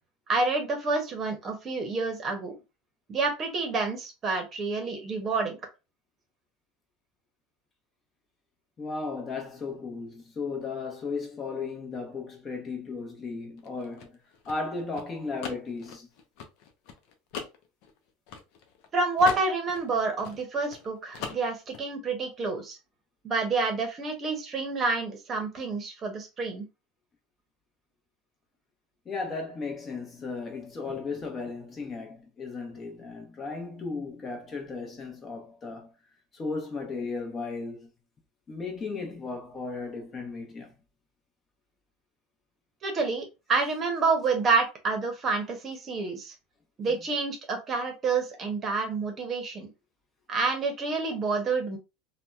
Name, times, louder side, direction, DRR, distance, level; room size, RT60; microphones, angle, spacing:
voice 1, 0.3-2.5 3.1-5.6 18.9-22.8 23.2-26.7 42.8-46.3 46.8-49.7 50.3-51.8, right 3 dB, 35° right, 0.8 m, -28 dB
voice 2, 8.8-14.2 14.5-16.1 29.1-35.9 36.3-37.9 38.5-40.7 46.9-47.0, left 4 dB, 30° left, 0.8 m, -35 dB
sound 1, 13.6-18.9 19.2-20.9 21.1-21.8, left 6 dB, 65° left, 0.6 m, -40 dB
2.8 x 2.2 x 2.3 m
supercardioid pair, 105°, 0 cm